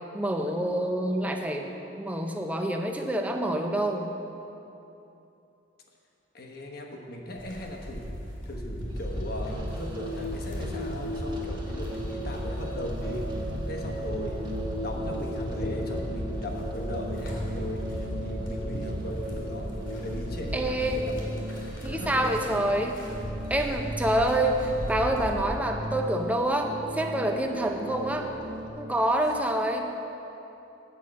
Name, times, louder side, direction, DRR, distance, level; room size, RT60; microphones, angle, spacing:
voice 1, 0.1-4.1 20.5-21.0 21.8-23.0 23.5-28.3 28.8-29.9, right 1 dB, 10° right, 3 dB, 0.5 m, -27 dB
voice 2, 6.3-8.0 8.4-13.2 13.7-19.7 20.0-21.3 21.9-22.6, left 1 dB, 50° left, 1 dB, 1.0 m, -38 dB
sound 1, 7.4-25.4, equal, 80° left, 2.1 m, -36 dB
sound 2, 8.9-28.7, right 1 dB, 25° right, 1.0 m, -37 dB
8.4 x 5.5 x 7.4 m, 2.9 s
head